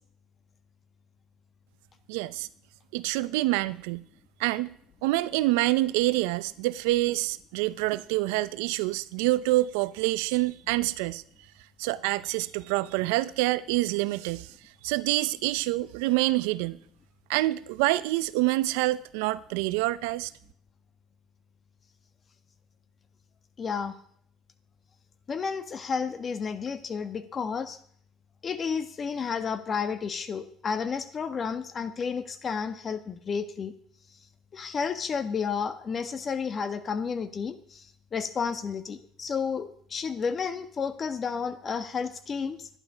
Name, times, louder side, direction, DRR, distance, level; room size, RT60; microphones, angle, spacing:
voice 1, 2.1-2.5 2.9-4.0 4.4-4.7 5.0-11.2 11.8-14.5 14.8-16.8 17.3-20.3, right 18 dB, 85° right, 0.6 m, -26 dB
voice 2, 23.6-23.9 25.3-27.8 28.4-33.7 34.5-37.8 38.1-42.7, left 6 dB, 40° left, 1.4 m, -31 dB
12.0 x 11.0 x 5.1 m
supercardioid pair, 85°, 0 cm